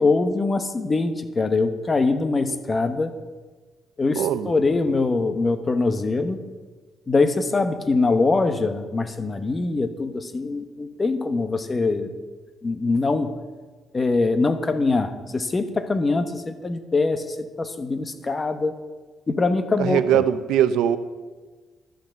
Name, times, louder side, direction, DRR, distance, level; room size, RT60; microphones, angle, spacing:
voice 1, 0.0-3.1 4.0-6.4 7.1-12.1 12.6-13.3 13.9-18.8 19.3-20.2, left 3 dB, 30° left, 10 dB, 1.1 m, -23 dB
voice 2, 4.2-4.5 19.8-21.0, right 10 dB, 90° right, 12 dB, 0.6 m, -21 dB
12.0 x 6.8 x 7.5 m, 1.4 s
cardioid pair, 90°, 0 cm